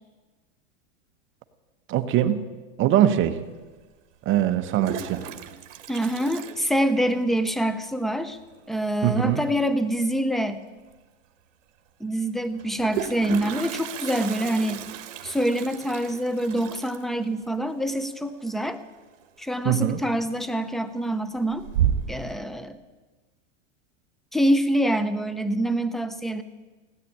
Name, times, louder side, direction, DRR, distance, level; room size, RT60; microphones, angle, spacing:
voice 1, 1.9-2.4 2.8-3.4 4.3-5.2 9.0-9.4 19.6-20.0, right 11 dB, 30° right, 9 dB, 1.1 m, -22 dB
Toilet flush, 3.2-3.3 4.5-7.3 7.6-7.7 8.0-8.1 8.3-8.7 10.5-10.6 10.9-11.0 12.5-19.2 19.5-20.0 20.4-20.9 21.3-22.3, right 10 dB, 80° right, 1.4 m, -33 dB
voice 2, 5.9-8.4 8.7-10.6 12.0-14.9 15.2-18.8 19.4-21.6 22.1-22.8 24.3-26.4, right 1 dB, ahead, 11 dB, 0.6 m, -25 dB
17.0 x 10.0 x 8.5 m, 1.3 s
supercardioid pair, 140°, 38 cm